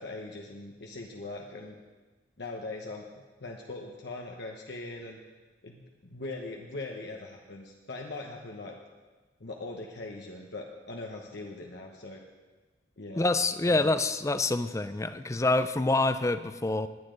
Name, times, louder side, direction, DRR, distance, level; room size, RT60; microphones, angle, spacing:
voice 1, 0.0-1.8 2.4-3.1 3.4-5.2 5.6-8.8 9.4-12.2 13.0-13.3 13.6-13.9, left 2 dB, 65° left, 0 dB, 1.0 m, -41 dB
voice 2, 13.2-16.9, left 2 dB, 15° left, 12 dB, 0.4 m, -26 dB
19.0 x 9.8 x 3.9 m, 1.3 s
head